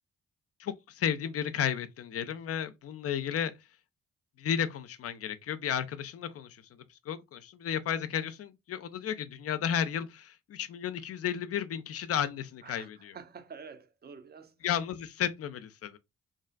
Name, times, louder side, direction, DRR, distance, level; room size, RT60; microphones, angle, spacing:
voice 1, 0.6-3.5 4.4-6.6 7.1-13.1 14.6-16.0, left 9 dB, 50° left, 0.4 m, -33 dB
voice 2, 12.6-14.5, right 6 dB, 35° right, 0.5 m, -48 dB
2.5 x 2.4 x 2.2 m
hypercardioid pair, 40°, 30 cm